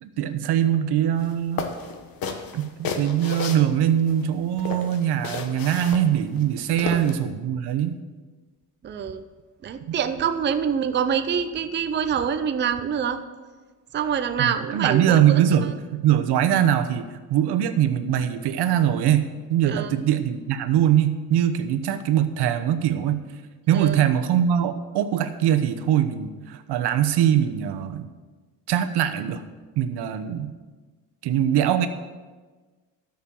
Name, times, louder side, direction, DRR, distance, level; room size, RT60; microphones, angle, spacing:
voice 1, 0.0-1.7 2.5-8.0 9.9-10.0 14.4-17.0 17.3-23.2 23.7-28.1 28.7-29.4 29.8-30.5 31.2-31.9, right 10 dB, 90° right, 9 dB, 1.0 m, -22 dB
sound 1, 1.2-1.3 1.6-4.2 4.6-7.2, left 5 dB, 60° left, 1.3 m, -32 dB
voice 2, 8.8-9.2 9.6-13.2 13.9-15.4 19.7-19.9 23.7-24.0, right 7 dB, 30° right, 9 dB, 0.6 m, -25 dB
12.5 x 6.5 x 7.0 m, 1.3 s
cardioid pair, 155°, 38 cm